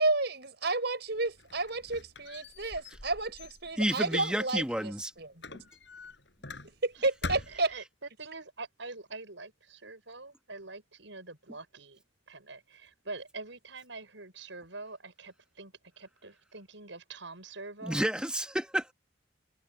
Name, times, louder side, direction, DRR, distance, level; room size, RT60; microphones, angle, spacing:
voice 1, 0.0-5.6 6.8-7.7, right 2 dB, 60° right, 6.8 m, -31 dB
Squeak, 1.1-4.9 5.4-6.9 7.2-7.8, left 2 dB, 65° left, 7.8 m, -44 dB
voice 2, 3.8-5.1 17.8-18.9, right 1 dB, 5° right, 1.5 m, -30 dB
voice 3, 7.7-12.0 12.3-18.1, right 3 dB, 75° right, 6.2 m, -45 dB
head